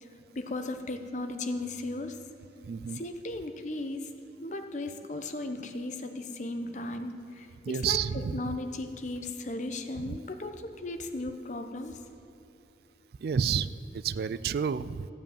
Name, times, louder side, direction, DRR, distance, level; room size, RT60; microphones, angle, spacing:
voice 1, 0.3-2.2 2.9-4.1 4.4-12.0, left 2 dB, 45° left, 6 dB, 0.8 m, -36 dB
voice 2, 2.7-3.0 7.7-8.6 10.0-10.2 13.2-15.1, right 7 dB, 60° right, 16 dB, 0.3 m, -30 dB
14.5 x 5.3 x 8.8 m, 3.0 s
head